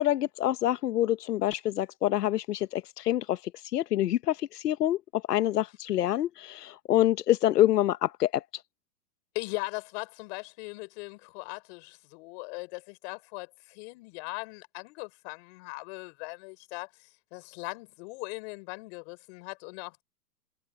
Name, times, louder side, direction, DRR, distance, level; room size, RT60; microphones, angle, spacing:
voice 1, 0.0-8.4, left 13 dB, 85° left, 1.1 m, -26 dB
voice 2, 9.3-20.0, left 30 dB, 40° left, 6.5 m, -39 dB
hypercardioid pair, 150°, 46 cm